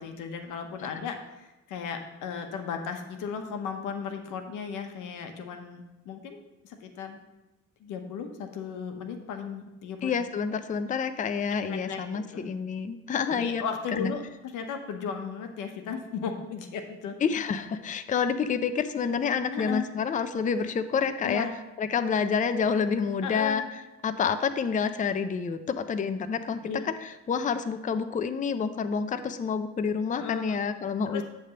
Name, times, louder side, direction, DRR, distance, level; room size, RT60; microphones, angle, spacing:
voice 1, 0.0-7.2 7.8-10.1 11.5-12.5 13.3-14.2 14.5-17.2 19.5-19.9 21.2-21.5 23.2-23.6 26.7-26.8 30.1-30.6 31.1-31.2, left 6 dB, 90° left, 6 dB, 0.9 m, -36 dB
voice 2, 10.0-13.6 14.0-14.1 17.2-21.5 21.8-23.6 24.0-26.9 27.3-31.2, left 6 dB, 25° left, 10 dB, 0.4 m, -28 dB
8.7 x 3.4 x 6.7 m, 1.0 s
cardioid pair, 90°, 30 cm